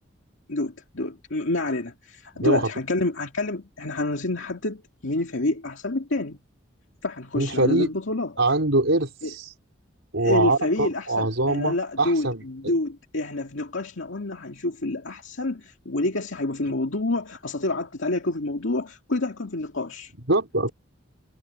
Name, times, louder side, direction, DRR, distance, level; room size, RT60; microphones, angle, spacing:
voice 1, 0.5-6.4 7.0-8.3 9.2-9.3 10.2-20.1, left 2 dB, 90° left, 2.1 m, -28 dB
voice 2, 2.3-2.7 7.3-7.9 8.4-9.5 10.1-12.7 20.3-20.7, right 2 dB, 80° right, 4.4 m, -23 dB
head